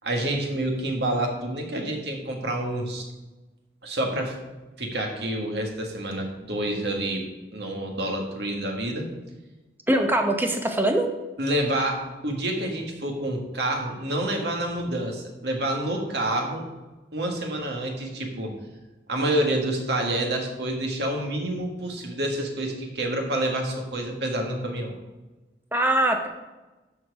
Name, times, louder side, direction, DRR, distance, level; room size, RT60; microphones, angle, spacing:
voice 1, 0.0-3.0 3.8-4.4 4.8-7.2 7.5-9.1 11.4-16.6 17.1-18.5 19.1-24.9, right 1 dB, 60° right, 2 dB, 1.8 m, -28 dB
voice 2, 9.9-11.1 25.7-26.3, right 1 dB, 10° right, 4 dB, 0.9 m, -22 dB
13.0 x 4.6 x 4.8 m, 1.1 s
head